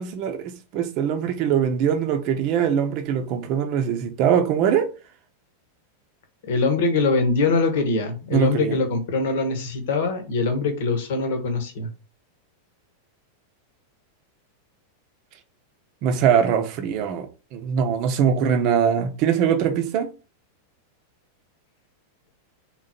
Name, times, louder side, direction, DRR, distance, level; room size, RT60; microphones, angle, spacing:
voice 1, 0.0-4.9 8.3-8.8 16.0-20.1, right 8 dB, 40° right, 0.8 m, -22 dB
voice 2, 6.5-11.9, left 3 dB, 55° left, 1.0 m, -23 dB
3.8 x 3.0 x 4.2 m
figure-of-eight pair, 90°, 0 cm